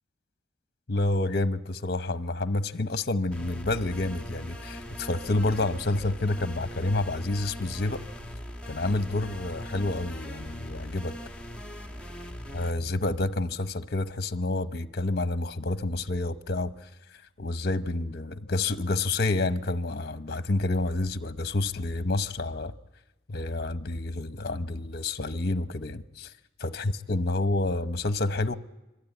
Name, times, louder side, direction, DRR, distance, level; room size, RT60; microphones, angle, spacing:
voice 1, 0.9-8.0 8.7-11.1 12.5-16.9 17.4-22.7 23.3-26.3 26.6-28.6, left 2 dB, 60° left, 0.9 m, -29 dB
sound 1, 3.3-12.7, equal, 5° left, 2.4 m, -40 dB
25.5 x 24.0 x 9.0 m
head